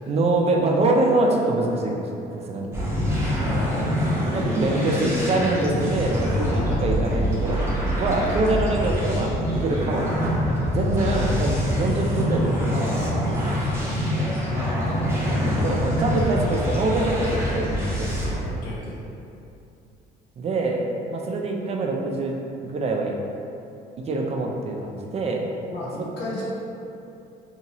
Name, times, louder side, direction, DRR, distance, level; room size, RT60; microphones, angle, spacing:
voice 1, 0.1-2.7 4.3-7.6 8.0-13.6 15.3-18.4 20.4-22.3 22.6-23.1 24.0-25.5, right 2 dB, 40° right, 0 dB, 0.4 m, -25 dB
sound 1, 2.7-18.4, equal, 15° right, 0.7 m, -25 dB
voice 2, 3.4-3.9 6.6-6.8 11.1-11.8 14.5-15.0 18.4-19.0 25.7-26.5, left 2 dB, 80° left, -6 dB, 0.8 m, -33 dB
2.8 x 2.6 x 2.9 m, 2.6 s
cardioid pair, 110°, 17 cm